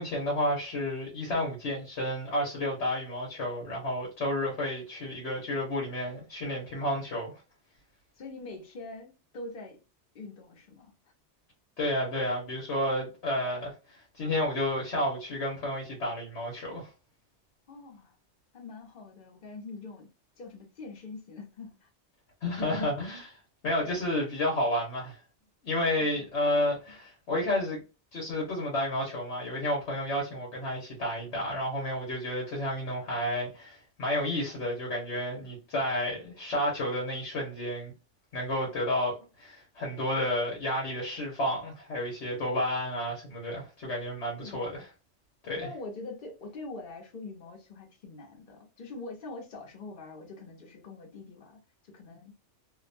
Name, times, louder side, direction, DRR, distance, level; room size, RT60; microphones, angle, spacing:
voice 1, 0.0-7.3 11.8-16.9 22.4-23.4 23.6-25.2 25.6-27.8 28.1-37.9 38.3-44.8 45.4-45.7, left 1 dB, 70° left, 1.2 m, -31 dB
voice 2, 8.2-9.8 10.1-10.9 17.7-18.1 18.5-20.1 20.4-21.9 23.8-23.9 26.0-26.2 44.4-44.9 45.6-52.3, left 3 dB, 50° left, 1.0 m, -44 dB
2.6 x 2.2 x 2.5 m
omnidirectional pair, 1.2 m